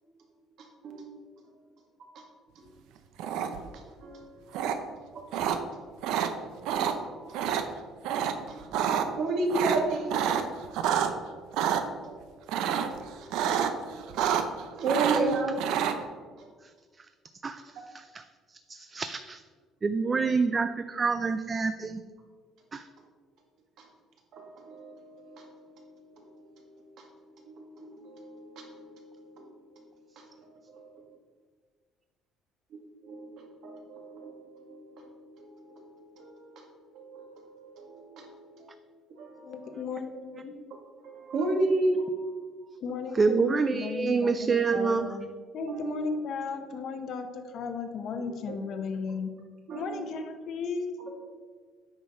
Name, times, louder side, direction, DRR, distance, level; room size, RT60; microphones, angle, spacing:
voice 1, 0.6-1.1 2.0-2.2 2.6-2.7 4.0-4.7 5.1-5.4 6.9-7.6 8.1-8.6 9.1-10.2 12.0-12.3 12.8-13.2 14.0-14.5 14.8-15.6 15.9-16.0 16.4-16.5 24.3-25.9 26.3-26.7 27.0-27.1 27.4-29.5 29.8-29.9 30.2-30.3 30.7-30.9 33.0-38.7 39.2-39.5 41.0-42.2 45.7-45.9 48.5-48.6 49.7-50.0 51.0-51.2, right 2 dB, 60° right, 1 dB, 1.9 m, -34 dB
sound 1, 3.2-3.7 4.5-4.7 5.3-5.6 6.0-6.3 6.6-6.9 7.3-7.6 8.0-8.3 8.6-9.0 9.5-11.1 11.5-11.8 12.5-13.0 13.3-13.7 14.0-14.6 14.9-15.9, right 9 dB, 80° right, 0.7 m, -27 dB
voice 2, 14.9-15.3 17.4-17.6 17.9-18.2 18.7-19.4 19.8-22.0 22.7-22.8 43.1-45.2, right 4 dB, 25° right, 9 dB, 0.3 m, -27 dB
voice 3, 39.4-40.6 42.8-44.4 44.7-45.3 45.5-49.3 49.7-51.0, left 4 dB, 50° left, 7 dB, 0.9 m, -35 dB
8.9 x 5.3 x 5.5 m, 1.5 s
cardioid pair, 150°, 0 cm